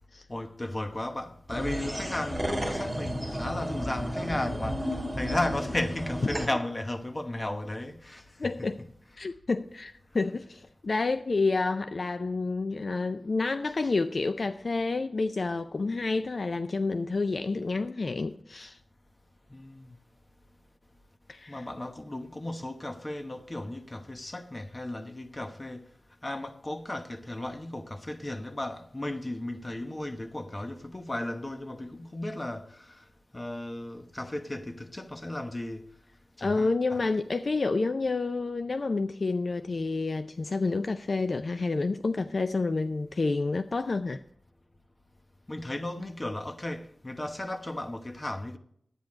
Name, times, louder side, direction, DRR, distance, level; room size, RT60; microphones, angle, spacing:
voice 1, 0.3-8.5 19.5-20.0 21.5-25.9 26.2-33.0 33.3-35.8 36.4-37.0 45.5-48.6, left 1 dB, 30° left, 1.0 m, -35 dB
sound 1, 1.5-6.5, equal, 5° right, 2.1 m, -33 dB
voice 2, 8.4-8.8 9.1-18.8 21.3-21.7 36.4-44.2, left 3 dB, 60° left, 0.4 m, -29 dB
10.5 x 9.0 x 4.8 m
wide cardioid pair, 75°, 0 cm